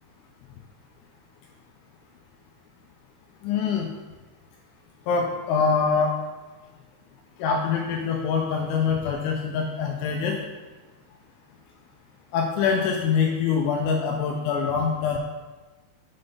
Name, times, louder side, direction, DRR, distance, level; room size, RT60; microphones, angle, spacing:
voice 1, 3.4-3.9 5.1-6.2 7.4-10.4 12.3-15.2, left 6 dB, 85° left, 2 dB, 2.8 m, -24 dB
7.8 x 5.5 x 5.3 m, 1.2 s
omnidirectional pair, 5.8 m